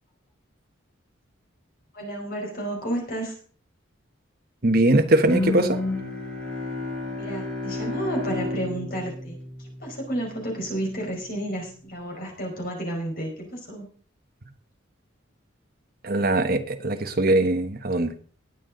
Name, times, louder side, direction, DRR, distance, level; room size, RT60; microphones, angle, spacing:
voice 1, 1.9-3.4 7.2-13.8, right 1 dB, 45° left, 0 dB, 5.2 m, -31 dB
voice 2, 4.6-5.8 16.0-18.1, right 1 dB, 45° right, 7 dB, 1.3 m, -21 dB
Bowed string instrument, 5.2-10.3, left 2 dB, 5° left, 4.6 m, -31 dB
20.0 x 8.4 x 3.9 m, 0.43 s
head